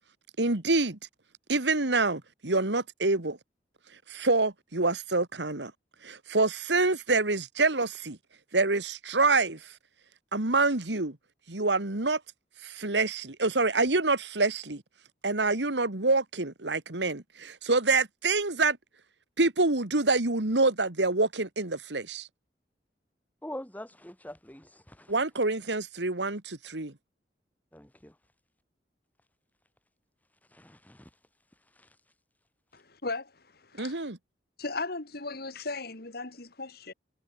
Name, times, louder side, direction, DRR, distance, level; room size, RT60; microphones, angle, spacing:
voice 1, 0.4-1.0 1.5-3.4 4.1-5.7 6.0-8.2 8.5-9.6 10.3-11.2 11.5-12.2 12.6-14.8 15.2-18.8 19.4-22.3 25.1-26.9 33.8-34.2, right 3 dB, 80° right, 2.3 m, -26 dB
voice 2, 23.4-25.1 27.7-28.1 30.5-31.1 31.8-31.9, left 1 dB, 10° left, 3.5 m, -44 dB
voice 3, 32.7-34.1 34.6-36.9, left 3 dB, 60° left, 2.8 m, -37 dB
head